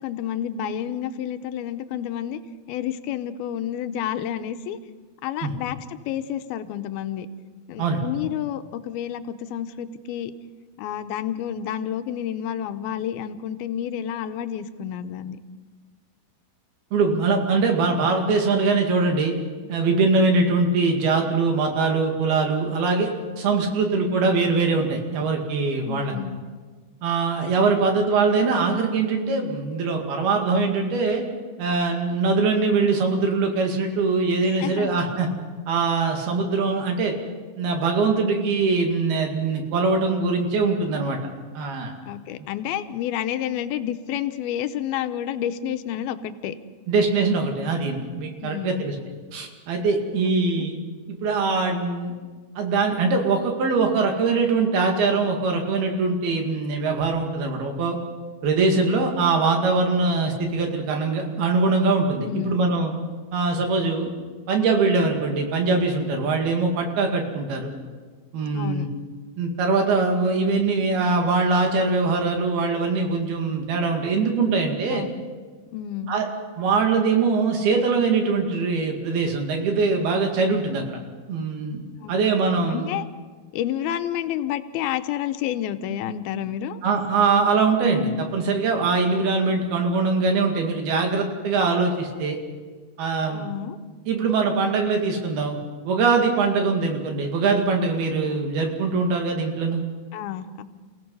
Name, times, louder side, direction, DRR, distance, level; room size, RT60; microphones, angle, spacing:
voice 1, 0.0-2.4 2.7-4.8 5.2-7.3 7.7-10.3 10.8-15.4 25.9-26.4 27.7-28.0 34.5-35.0 42.1-46.6 48.4-48.9 50.5-50.6 62.3-62.6 68.5-68.9 74.9-75.2 75.7-76.1 82.0-82.1 82.7-83.0 83.5-86.8 93.2-93.8 100.1-100.6, left 10 dB, 85° left, 10 dB, 2.6 m, -30 dB
voice 2, 16.9-19.3 19.7-23.1 23.4-26.1 27.0-31.2 31.6-35.3 35.7-37.1 37.6-41.2 41.6-41.9 42.4-42.5 46.9-49.0 49.3-50.8 51.1-52.1 52.6-58.0 58.4-62.9 63.3-64.1 64.5-67.7 68.3-68.9 69.4-75.0 76.1-76.3 76.6-81.0 81.3-81.8 82.1-82.9 86.8-92.4 93.0-93.5 94.1-95.6 95.9-99.8, right 4 dB, 80° right, 3 dB, 4.2 m, -22 dB
29.0 x 16.5 x 5.5 m, 1.4 s
omnidirectional pair, 4.3 m